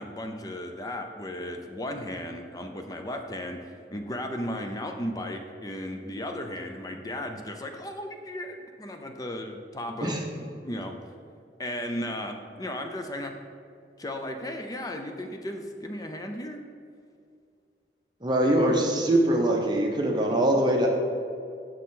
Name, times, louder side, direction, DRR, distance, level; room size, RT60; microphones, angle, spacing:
voice 1, 0.0-10.2 10.6-11.0 11.6-13.4 14.0-16.6, left 1 dB, 20° left, 4 dB, 0.5 m, -35 dB
voice 2, 18.2-20.9, right 1 dB, 25° right, 0 dB, 0.8 m, -23 dB
6.7 x 6.2 x 3.8 m, 2.3 s
head